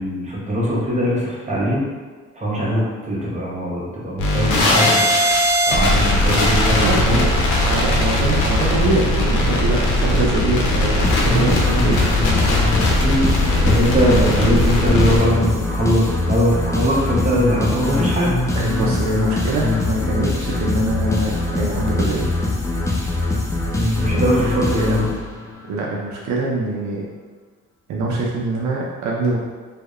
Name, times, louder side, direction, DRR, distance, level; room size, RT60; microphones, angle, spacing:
voice 1, 0.0-1.8 2.3-5.0 5.7-7.3 13.0-13.3 13.6-18.4 23.7-25.0, equal, 25° right, -5 dB, 0.7 m, -21 dB
sound 1, 4.2-15.2, left 1 dB, 80° left, 0.6 m, -18 dB
voice 2, 6.7-7.3 7.6-12.2 18.5-22.3 24.1-25.0 25.6-27.0 27.9-29.4, right 2 dB, 65° right, -3 dB, 0.4 m, -24 dB
sound 2, 11.0-25.6, left 2 dB, 10° left, 0.3 m, -22 dB
2.7 x 2.0 x 2.3 m, 1.4 s
cardioid pair, 90°, 30 cm